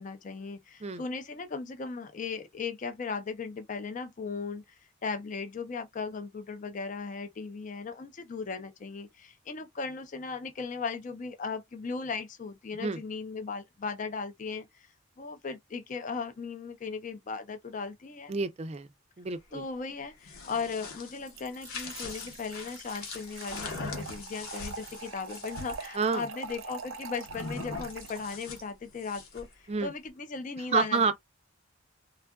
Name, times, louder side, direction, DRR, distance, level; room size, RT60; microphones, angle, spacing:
voice 1, 0.0-14.9 15.2-18.3 19.5-31.1, left 4 dB, 35° left, 0.4 m, -37 dB
voice 2, 18.3-18.9 19.2-19.6 26.0-26.2 29.7-29.9 30.7-31.1, right 4 dB, 30° right, 0.4 m, -28 dB
move and growl grizzly bear, 20.1-25.8 27.3-29.5, left 3 dB, 85° left, 1.0 m, -41 dB
Trickle dribble / Fill (with liquid), 21.3-28.6, right 5 dB, 75° right, 0.6 m, -44 dB
3.5 x 2.3 x 2.2 m
head